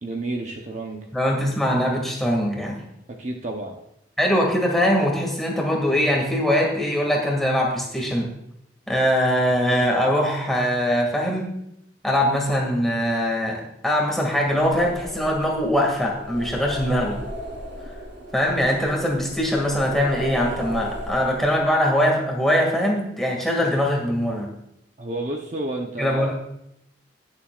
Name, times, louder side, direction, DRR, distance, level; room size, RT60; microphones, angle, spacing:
voice 1, 0.0-1.1 3.2-3.8 25.0-26.3, right 2 dB, 40° right, 2 dB, 0.9 m, -30 dB
voice 2, 1.1-2.8 4.2-8.3 8.9-11.5 12.0-17.2 18.3-24.5 26.0-26.3, equal, ahead, -1 dB, 2.2 m, -22 dB
sound 1, 14.3-21.9, equal, 80° right, 3.6 m, -36 dB
21.0 x 7.3 x 2.5 m, 0.80 s
head